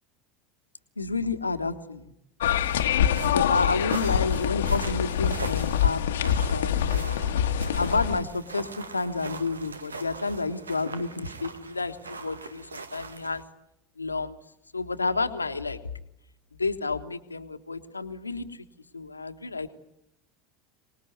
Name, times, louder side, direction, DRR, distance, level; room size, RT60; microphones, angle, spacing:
voice 1, 1.0-2.0 3.2-7.2 7.8-13.4 14.0-14.4 14.7-15.8 16.6-18.5 18.9-19.7, left 3 dB, 85° left, 8 dB, 1.4 m, -30 dB
sound 1, 2.4-8.2, left 9 dB, 70° left, 1.3 m, -25 dB
sound 2, 2.4-13.4, right 4 dB, 80° right, 1.5 m, -41 dB
25.5 x 20.0 x 9.6 m, 0.81 s
figure-of-eight pair, 75°, 0 cm